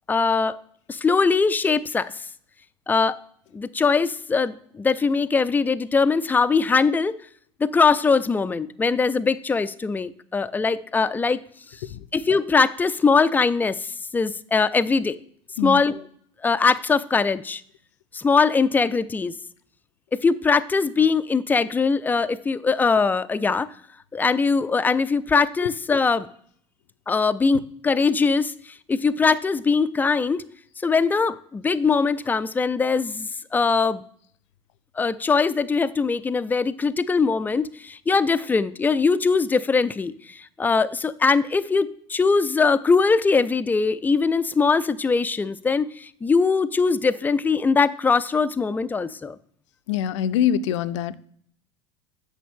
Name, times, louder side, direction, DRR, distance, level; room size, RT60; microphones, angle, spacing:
voice 1, 0.1-0.6 0.9-2.3 2.9-3.2 3.5-7.2 7.6-11.4 12.1-15.2 15.6-16.1 16.4-17.6 18.1-19.3 20.1-23.7 24.1-26.3 27.1-28.5 28.9-30.4 30.8-34.0 35.0-49.4, left 4 dB, 10° left, 14 dB, 0.3 m, -21 dB
voice 2, 49.9-51.2, left 9 dB, 70° left, 14 dB, 0.5 m, -23 dB
8.4 x 6.3 x 3.6 m, 0.62 s
hypercardioid pair, 80°, 16 cm